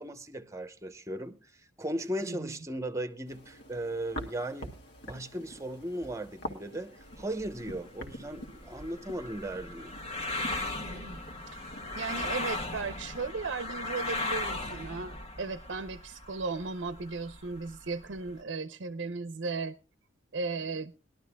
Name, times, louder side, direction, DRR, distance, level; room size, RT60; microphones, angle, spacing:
voice 1, 0.0-1.5 1.8-4.7 5.0-9.9, right 1 dB, 15° right, 0.9 m, -37 dB
voice 2, 2.2-2.5 10.7-11.2 11.5-19.7 20.3-20.9, right 4 dB, 70° right, 0.6 m, -36 dB
sound 1, 3.2-13.3, equal, 60° left, 2.0 m, -46 dB
sound 2, 7.1-18.4, left 2 dB, 35° left, 1.5 m, -38 dB
20.5 x 12.0 x 2.3 m
head